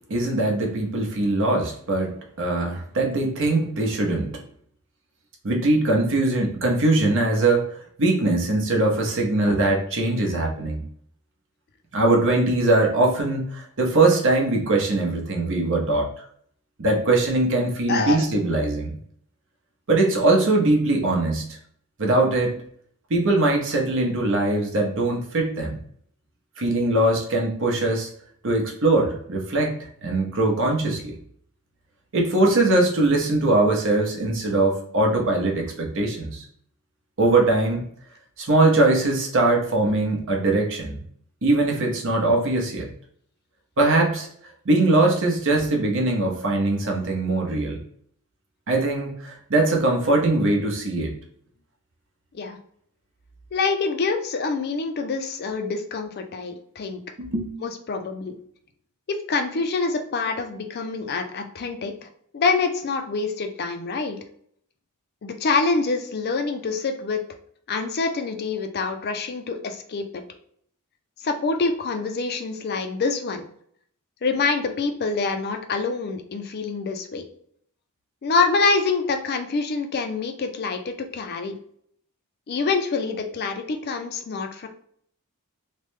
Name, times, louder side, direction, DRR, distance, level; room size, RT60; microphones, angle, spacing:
voice 1, 0.1-4.4 5.4-10.8 11.9-16.1 16.8-18.9 19.9-21.5 22.0-22.6 23.1-25.8 26.6-28.1 28.4-31.1 32.1-36.4 37.2-37.8 38.4-41.0 41.4-42.9 43.8-44.3 44.6-47.8 48.7-51.1 57.2-57.5, right 2 dB, 60° right, 0 dB, 0.8 m, -21 dB
voice 2, 17.9-18.2 52.3-52.6 53.5-57.0 57.6-58.3 59.1-62.1 62.3-64.2 65.2-67.2 67.7-70.2 71.2-73.4 74.2-77.2 78.2-81.6 82.5-84.7, left 4 dB, 45° left, 6 dB, 0.4 m, -26 dB
3.1 x 2.1 x 3.1 m, 0.64 s
head